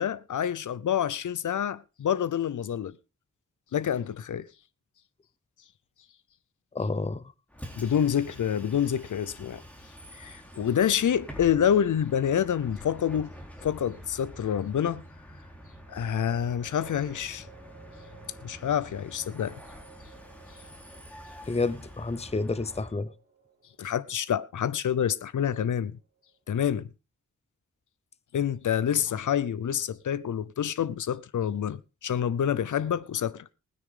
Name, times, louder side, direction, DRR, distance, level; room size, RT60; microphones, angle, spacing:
voice 1, 0.0-2.9 3.7-4.5 7.8-9.6 10.1-13.3 13.6-15.0 15.9-17.5 18.4-19.6 23.8-25.9 26.5-26.9 28.3-33.5, left 9 dB, 85° left, 0.7 m, -27 dB
voice 2, 6.7-7.3 21.4-23.1, left 3 dB, 20° left, 0.7 m, -30 dB
Bus, 7.5-22.9, equal, 5° left, 3.6 m, -47 dB
sound 1, 15.4-26.7, right 5 dB, 35° right, 5.2 m, -57 dB
20.0 x 9.6 x 3.7 m
wide cardioid pair, 110°, 30 cm